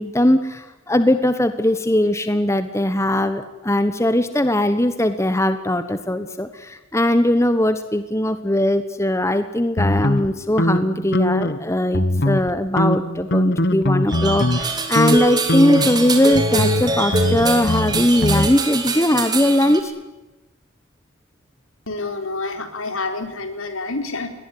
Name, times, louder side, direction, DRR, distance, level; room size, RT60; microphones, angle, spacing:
voice 1, 0.0-19.9, left 1 dB, 15° left, 10 dB, 1.1 m, -20 dB
sound 1, 9.8-11.6 11.9-12.5 12.8-14.7 15.0-15.2 15.5-18.5, left 1 dB, 50° left, 1.3 m, -22 dB
sound 2, 14.1-19.8, right 3 dB, 20° right, 3.3 m, -24 dB
voice 2, 21.9-24.3, left 3 dB, 70° left, 7 dB, 4.2 m, -28 dB
22.5 x 19.0 x 10.0 m, 1.0 s
head